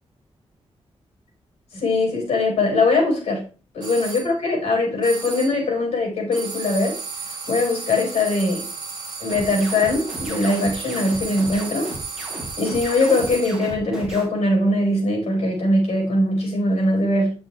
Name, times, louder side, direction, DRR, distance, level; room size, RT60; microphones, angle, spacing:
voice 1, 1.7-3.4 3.7-7.0 7.5-8.6 9.2-11.9 12.6-17.3, left 2 dB, 75° left, 4.8 m, -21 dB
sound 1, 3.8-4.3 5.0-5.7 6.3-13.7, right 4 dB, 40° right, 2.2 m, -34 dB
sound 2, 9.3-14.2, right 1 dB, 5° right, 3.4 m, -35 dB
9.0 x 7.4 x 3.3 m
wide cardioid pair, 180°, 11 cm